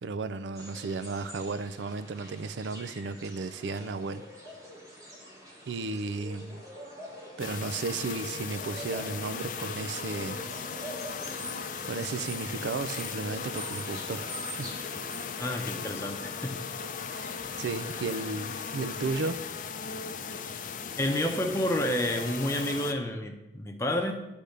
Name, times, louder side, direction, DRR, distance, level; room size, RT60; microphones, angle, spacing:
voice 1, 0.0-4.3 5.7-6.6 7.4-10.5 11.9-14.7 15.0-15.3 17.1-17.3 17.6-19.5, right 4 dB, 90° right, 0.4 m, -34 dB
sound 1, 0.6-19.3, equal, 20° right, 1.4 m, -46 dB
sound 2, 7.4-22.9, left 6 dB, 45° left, 0.4 m, -37 dB
voice 2, 15.4-16.6 17.4-17.5 21.0-24.1, left 1 dB, 15° left, 0.7 m, -30 dB
10.0 x 3.5 x 6.5 m
head